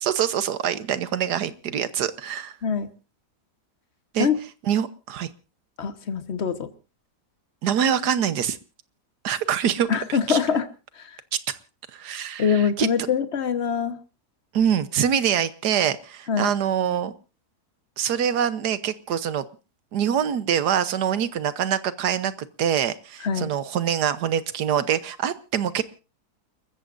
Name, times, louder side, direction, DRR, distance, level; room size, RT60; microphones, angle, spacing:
voice 1, 0.0-2.6 4.1-4.3 4.7-5.3 7.6-8.6 9.2-9.9 10.3-10.4 11.5-11.6 11.9-12.9 14.5-17.1 18.0-19.4 19.9-22.3 22.6-25.8, right 9 dB, 80° right, 14 dB, 1.5 m, -24 dB
voice 2, 5.8-6.7 9.9-10.7 10.9-11.2 12.4-14.0 16.3-16.5 23.2-23.5, left 6 dB, 45° left, 10 dB, 1.4 m, -24 dB
29.5 x 14.0 x 2.6 m, 0.32 s
omnidirectional pair, 1.7 m